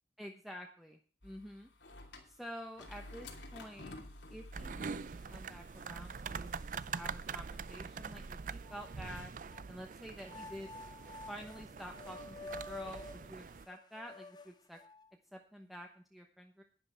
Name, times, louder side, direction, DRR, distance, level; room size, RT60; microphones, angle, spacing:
voice 1, 0.2-1.7 2.3-4.0 4.3-5.0 5.3-9.3 9.7-10.7 11.3-14.8 15.3-16.6, equal, ahead, 2 dB, 0.9 m, -49 dB
sound 1, 1.2-8.4, left 2 dB, 85° left, 2.9 m, -53 dB
sound 2, 4.5-13.7, right 5 dB, 45° right, 0.4 m, -44 dB
sound 3, 5.2-5.3 5.8-6.7 7.3-7.4 8.5-9.6 10.2-15.1, left 2 dB, 25° left, 1.0 m, -51 dB
11.5 x 10.5 x 4.4 m, 0.43 s
head